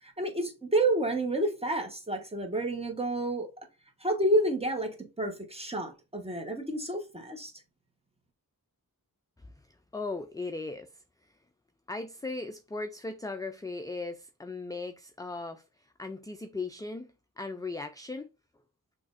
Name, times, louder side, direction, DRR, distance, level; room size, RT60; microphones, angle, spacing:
voice 1, 0.0-3.5 4.0-7.5, right 1 dB, 15° right, 1.2 m, -29 dB
voice 2, 9.9-11.0 11.9-18.3, left 3 dB, 10° left, 0.4 m, -38 dB
6.0 x 3.2 x 2.5 m
wide cardioid pair, 80°, 37 cm